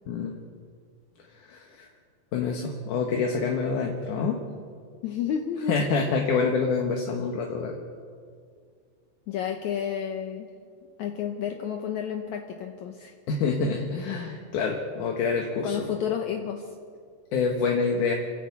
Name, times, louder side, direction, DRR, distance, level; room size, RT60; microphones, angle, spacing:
voice 1, 0.1-0.4 1.5-1.9 2.3-4.4 5.7-7.7 13.3-15.8 17.3-18.1, left 4 dB, 60° left, 1 dB, 2.4 m, -26 dB
voice 2, 5.0-5.7 9.3-10.5 11.0-13.1 15.6-16.8, left 8 dB, 80° left, 4 dB, 1.6 m, -31 dB
28.5 x 11.0 x 8.3 m, 2.2 s
omnidirectional pair, 4.7 m